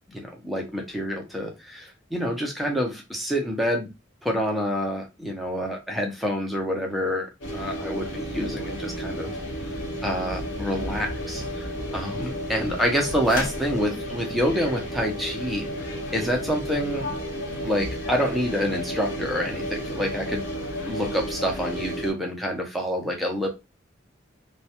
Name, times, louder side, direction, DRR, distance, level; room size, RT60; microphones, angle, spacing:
voice 1, 0.1-3.9 4.2-7.3 7.5-9.4 9.6-17.0 17.6-20.4 20.8-23.5, equal, ahead, 1 dB, 0.5 m, -27 dB
sound 1, 7.4-22.1, equal, 75° left, 0.8 m, -32 dB
sound 2, 13.2-13.7, left 2 dB, 40° left, 0.7 m, -34 dB
2.3 x 2.1 x 2.8 m, 0.25 s
head